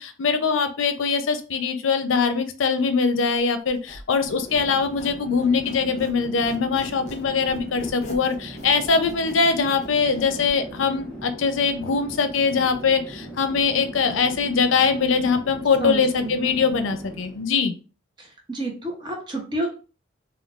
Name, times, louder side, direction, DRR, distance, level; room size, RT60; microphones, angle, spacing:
voice 1, 0.0-17.7, left 5 dB, 85° left, 9 dB, 0.5 m, -22 dB
Squeak, 3.7-6.2 6.4-10.5, left 1 dB, 35° left, 0.6 m, -42 dB
Chatter / Fixed-wing aircraft airplane, 4.1-17.5, right 1 dB, 5° left, 0.8 m, -39 dB
voice 2, 15.8-16.3 18.2-19.7, right 2 dB, 25° right, 0 dB, 0.6 m, -29 dB
3.6 x 2.2 x 2.3 m, 0.35 s
head